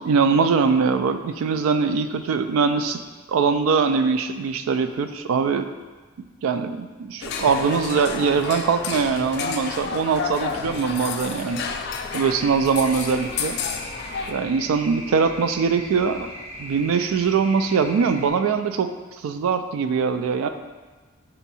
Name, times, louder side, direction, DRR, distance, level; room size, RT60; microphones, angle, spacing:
voice 1, 0.0-3.0 3.3-5.7 6.2-11.6 12.1-13.6 14.3-16.3 16.6-18.9 19.2-20.5, right 5 dB, 90° right, 9 dB, 0.3 m, -22 dB
sound 1, 7.2-14.3, left 5 dB, 55° left, 0.3 m, -30 dB
sound 2, 12.1-18.3, equal, 30° right, 0.6 m, -39 dB
4.4 x 2.7 x 4.1 m, 1.3 s
head